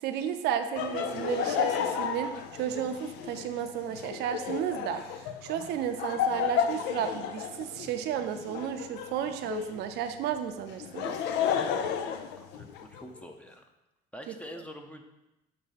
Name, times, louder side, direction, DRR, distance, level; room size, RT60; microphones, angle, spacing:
voice 1, 0.0-11.2 14.3-14.4, right 9 dB, 80° right, 7 dB, 0.5 m, -33 dB
Laughter, 0.7-9.8 10.7-13.0, left 8 dB, 90° left, 0.5 m, -32 dB
voice 2, 12.4-13.6 14.1-15.0, equal, 5° left, 4 dB, 0.6 m, -45 dB
6.6 x 2.7 x 5.6 m, 0.96 s
cardioid pair, 110°, 17 cm